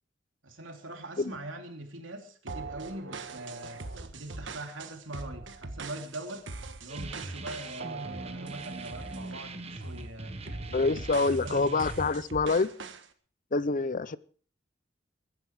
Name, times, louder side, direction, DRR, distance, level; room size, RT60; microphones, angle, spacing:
voice 1, 0.4-3.8 4.1-6.5 6.8-10.4 10.7-11.0 11.2-11.7, right 1 dB, 90° right, 3.2 m, -42 dB
sound 1, 2.5-9.4 9.8-10.1 10.5-13.1, right 4 dB, 70° right, 1.5 m, -42 dB
sound 2, 6.9-12.1, right 2 dB, 30° right, 1.3 m, -41 dB
voice 2, 10.7-12.7 13.5-14.2, left 3 dB, 45° left, 0.7 m, -26 dB
22.0 x 10.5 x 4.8 m
head